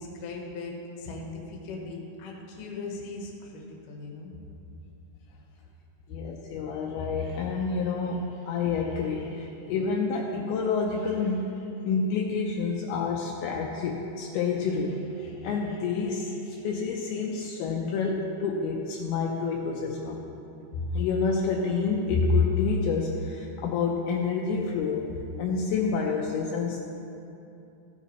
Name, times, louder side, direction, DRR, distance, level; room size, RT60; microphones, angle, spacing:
voice 1, 0.0-4.3, left 3 dB, 65° left, 0 dB, 2.4 m, -39 dB
voice 2, 6.1-20.3 20.8-25.1 25.4-26.8, left 4 dB, 80° left, -1 dB, 2.5 m, -28 dB
15.0 x 8.2 x 3.1 m, 2.8 s
omnidirectional pair, 4.7 m